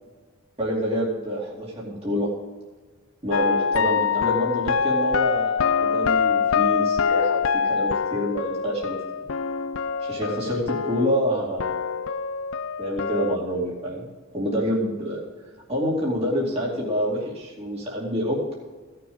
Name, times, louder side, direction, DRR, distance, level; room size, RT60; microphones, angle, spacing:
voice 1, 0.6-2.3 3.2-8.9 10.0-11.7 12.8-14.1 14.3-15.2 15.7-18.4, equal, 30° right, -5 dB, 2.7 m, -27 dB
sound 1, 3.3-11.3 11.6-13.4, left 6 dB, 70° left, 0.5 m, -24 dB
16.0 x 6.9 x 5.5 m, 1.4 s
head